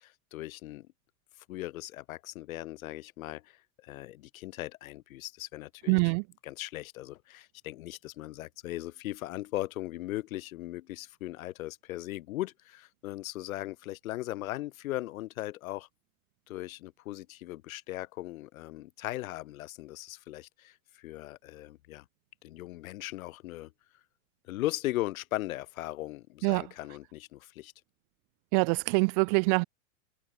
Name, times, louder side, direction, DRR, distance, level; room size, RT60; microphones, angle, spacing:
voice 1, 0.3-0.9 1.5-6.1 6.4-15.9 16.5-22.0 22.4-23.7 24.5-27.7, left 16 dB, 65° left, 6.7 m, -38 dB
voice 2, 5.9-6.2 26.4-26.6 28.5-29.6, right 37 dB, 35° right, 0.4 m, -24 dB
hypercardioid pair, 115°, 44 cm